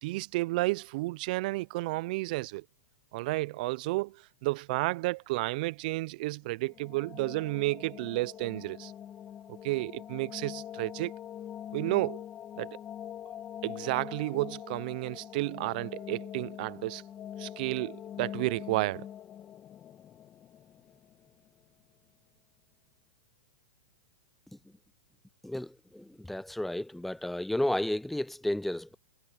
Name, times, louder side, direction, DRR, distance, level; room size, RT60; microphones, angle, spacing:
voice 1, 0.0-2.6 3.1-8.9 9.5-11.1 11.7-12.2 12.6-12.8 13.6-17.0 17.4-19.1, right 21 dB, 50° right, 0.6 m, -32 dB
sound 1, 6.5-21.5, left 10 dB, 25° left, 1.7 m, -44 dB
voice 2, 25.4-28.9, left 1 dB, ahead, 0.4 m, -32 dB
hypercardioid pair, 120°, 6 cm